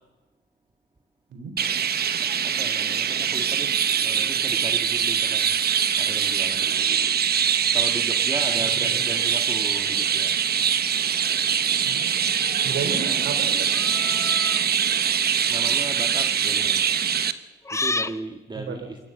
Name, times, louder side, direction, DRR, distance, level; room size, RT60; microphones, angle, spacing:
Chirp tweet, 1.6-17.3, right 8 dB, 55° right, 1.1 m, -23 dB
voice 1, 2.4-5.4 6.0-6.8 7.7-10.4 15.5-16.9 17.7-19.0, right 2 dB, 25° right, 4 dB, 1.8 m, -36 dB
voice 2, 11.8-12.3 12.6-13.7 18.5-18.8, right 5 dB, 80° right, 8 dB, 4.0 m, -33 dB
sound 1, 13.7-14.7 15.5-15.8 17.7-18.2, left 3 dB, 15° left, 0.6 m, -30 dB
28.0 x 13.5 x 8.2 m, 1.2 s
cardioid pair, 110°, 19 cm